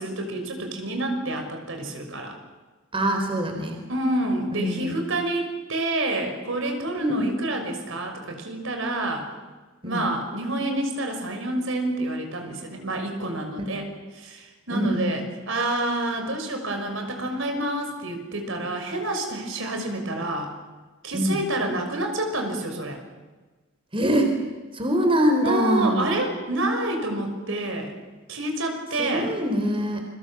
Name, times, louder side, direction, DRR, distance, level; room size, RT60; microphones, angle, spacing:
voice 1, 0.0-2.4 3.9-9.3 9.8-20.5 21.0-23.0 25.4-27.9 28.3-29.3, right 1 dB, 70° right, 4 dB, 6.0 m, -28 dB
voice 2, 2.9-3.8 4.5-5.0 7.0-7.3 9.8-10.1 13.5-13.6 14.7-15.2 21.1-21.4 23.9-24.3 24.7-26.1 28.9-30.0, equal, 25° right, 4 dB, 3.8 m, -24 dB
29.0 x 24.0 x 7.3 m, 1.3 s
head